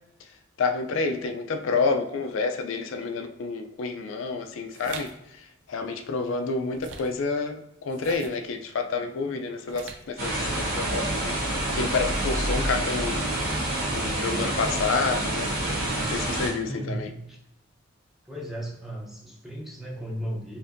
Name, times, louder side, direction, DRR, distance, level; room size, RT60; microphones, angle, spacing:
voice 1, 0.6-5.1 5.7-11.3 11.7-13.3 13.9-15.5 16.1-17.1, left 4 dB, 75° left, 5 dB, 0.4 m, -29 dB
sound 1, 4.7-5.1 6.7-7.2 7.9-8.5 9.7-10.2, right 5 dB, 60° right, 0.4 m, -41 dB
sound 2, 10.2-16.5, right 1 dB, 45° right, 1.1 m, -27 dB
voice 2, 16.6-17.4 18.2-20.6, right 1 dB, ahead, -3 dB, 0.6 m, -35 dB
4.3 x 2.6 x 2.5 m, 0.86 s
head